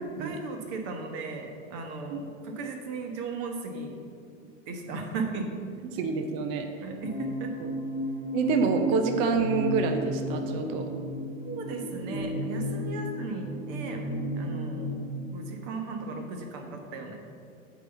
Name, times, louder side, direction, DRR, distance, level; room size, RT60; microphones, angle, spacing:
voice 1, 0.2-4.0 4.7-5.5 6.8-7.5 11.4-14.1 14.4-15.0 15.3-17.2, right 3 dB, 35° right, 4 dB, 1.2 m, -36 dB
voice 2, 5.9-6.7 8.3-10.9, right 4 dB, 15° right, 5 dB, 0.3 m, -27 dB
sound 1, 7.0-15.2, left 1 dB, 90° left, 1.3 m, -33 dB
8.8 x 4.1 x 7.0 m, 2.3 s
hypercardioid pair, 110°, 41 cm